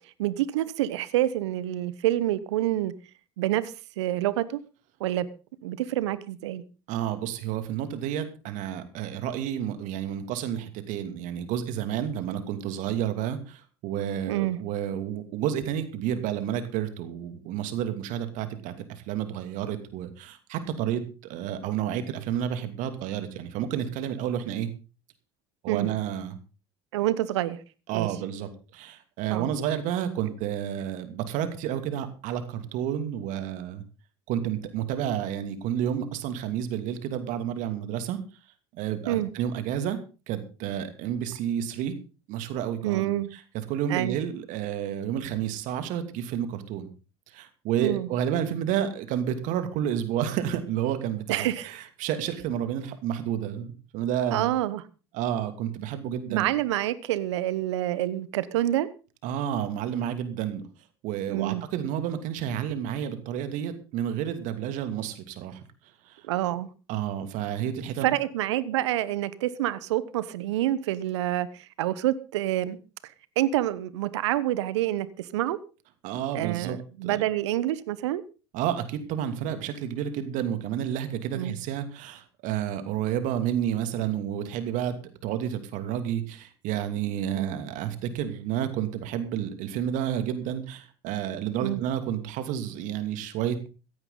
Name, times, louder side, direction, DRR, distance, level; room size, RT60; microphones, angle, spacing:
voice 1, 0.2-2.9 3.4-4.6 5.0-5.3 5.6-6.6 14.3-14.6 25.7-25.9 26.9-27.6 27.9-28.1 29.3-29.5 39.1-39.3 42.8-43.3 43.9-44.2 47.8-48.1 51.3-51.7 54.3-54.8 56.3-58.9 61.3-61.6 66.3-66.7 68.0-72.8 73.4-75.6 76.3-78.2 81.3-81.6 87.3-87.6 91.6-91.8, right 14 dB, 75° right, 17 dB, 1.1 m, -27 dB
voice 2, 6.9-24.7 25.6-26.4 27.9-33.8 34.3-38.2 38.7-40.0 40.3-41.9 42.3-43.4 43.7-46.9 47.3-54.5 55.1-56.5 59.2-60.6 61.0-65.6 66.1-66.2 66.9-68.1 76.0-77.2 78.5-84.9 85.2-93.6, right 10 dB, 60° right, 9 dB, 2.6 m, -30 dB
16.0 x 14.0 x 3.9 m, 0.34 s
hypercardioid pair, 70°, 15 cm